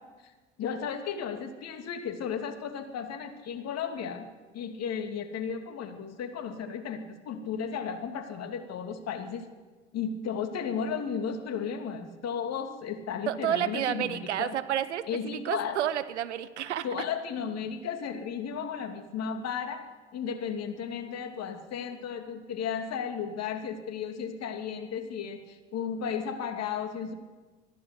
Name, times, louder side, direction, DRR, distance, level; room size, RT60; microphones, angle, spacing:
voice 1, 0.6-4.3 4.5-9.5 9.9-14.5 15.1-15.8 16.8-19.8 20.1-27.1, left 7 dB, 50° left, 6 dB, 2.7 m, -34 dB
voice 2, 13.3-15.0 15.4-16.9, right 11 dB, 80° right, 14 dB, 1.1 m, -30 dB
21.5 x 14.5 x 8.4 m, 1.3 s
figure-of-eight pair, 60°, 34 cm